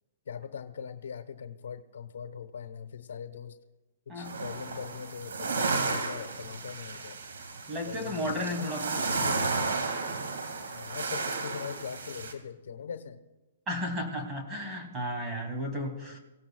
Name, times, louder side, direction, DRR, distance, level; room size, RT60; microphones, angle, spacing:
voice 1, 0.3-3.6 4.1-7.2 7.8-8.7 8.9-9.4 10.7-13.2 16.1-16.2, left 7 dB, 80° left, 8 dB, 1.1 m, -41 dB
sound 1, 4.2-12.3, right 3 dB, 85° right, 2.0 m, -33 dB
voice 2, 7.7-9.0 13.7-16.2, equal, 15° right, 1 dB, 2.5 m, -33 dB
24.5 x 17.0 x 2.3 m, 1.1 s
hypercardioid pair, 150°, 0 cm